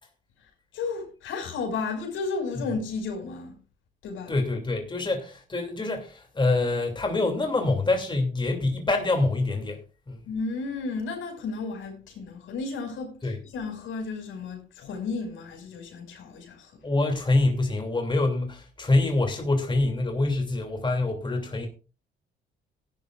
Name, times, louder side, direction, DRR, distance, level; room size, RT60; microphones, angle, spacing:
voice 1, 0.7-3.6 4.0-4.4 10.3-16.7, left 4 dB, 85° left, 5.6 m, -33 dB
voice 2, 4.3-9.8 10.1-10.2 13.2-13.4 16.8-21.7, left 2 dB, 25° left, 2.7 m, -25 dB
17.5 x 10.5 x 2.5 m
cardioid pair, 90°, 20 cm